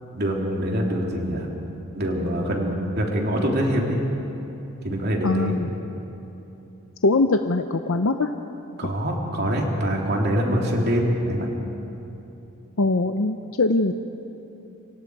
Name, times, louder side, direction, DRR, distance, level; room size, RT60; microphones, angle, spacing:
voice 1, 0.1-1.5 1.9-4.0 4.8-5.5 8.8-11.5, equal, 45° right, -1 dB, 3.0 m, -24 dB
voice 2, 5.2-5.7 7.0-8.3 12.8-13.9, left 2 dB, 65° left, 7 dB, 0.7 m, -22 dB
28.5 x 25.0 x 4.8 m, 3.0 s
head